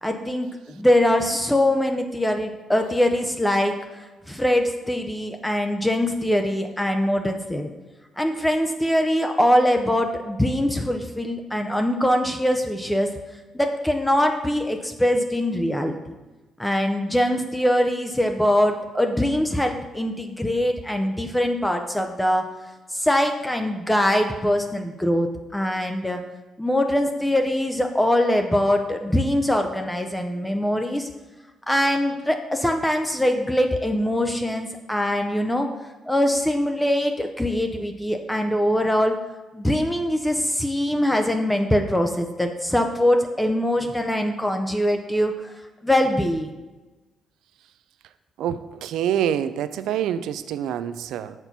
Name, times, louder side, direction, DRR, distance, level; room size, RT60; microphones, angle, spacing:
voice 1, 0.0-7.7 8.2-13.1 13.5-16.0 16.6-22.4 22.9-25.3 25.5-26.2 26.6-31.1 31.7-35.7 36.1-39.2 39.5-45.3 45.8-46.5, left 1 dB, 10° left, 5 dB, 0.5 m, -22 dB
voice 2, 48.4-51.3, right 10 dB, 85° right, 12 dB, 0.3 m, -26 dB
6.7 x 4.3 x 5.8 m, 1.1 s
cardioid pair, 90°, 0 cm